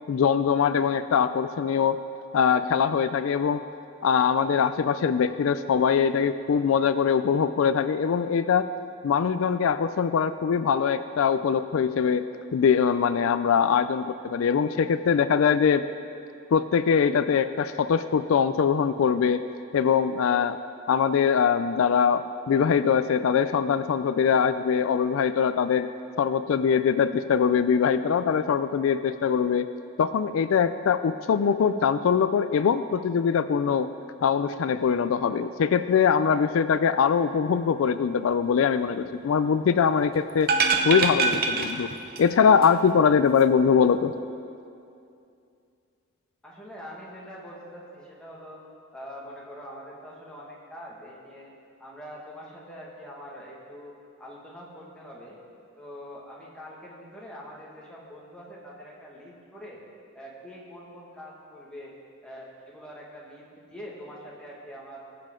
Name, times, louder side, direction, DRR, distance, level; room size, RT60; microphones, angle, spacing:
voice 1, 0.1-2.0 2.3-3.6 4.0-8.7 9.0-12.2 12.5-15.8 16.5-19.4 19.7-20.6 20.9-25.9 26.2-29.7 30.0-33.9 34.2-40.5 40.8-41.9 42.2-44.1, left 6 dB, 75° left, 12 dB, 0.3 m, -22 dB
sound 1, 40.4-42.4 42.6-42.7, right 4 dB, 45° right, 0.7 m, -24 dB
voice 2, 46.4-48.6 48.9-51.5 51.8-55.4 55.8-59.8 60.1-61.9 62.2-65.0, equal, 5° left, -5 dB, 1.8 m, -44 dB
19.5 x 7.6 x 3.7 m, 2.5 s
head